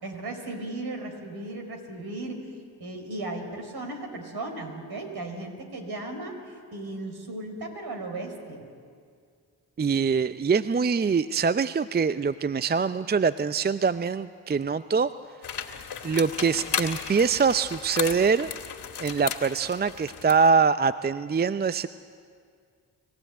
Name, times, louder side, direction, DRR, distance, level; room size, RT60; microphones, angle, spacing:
voice 1, 0.0-2.5 2.8-8.6, right 2 dB, 60° right, 4 dB, 4.9 m, -36 dB
voice 2, 9.8-15.1 16.0-18.5 19.0-21.9, right 5 dB, 25° right, 14 dB, 0.5 m, -24 dB
sound 1, 15.4-20.5, left 8 dB, 65° left, 2.2 m, -35 dB
25.5 x 15.5 x 9.2 m, 2.1 s
hypercardioid pair, 40°, 43 cm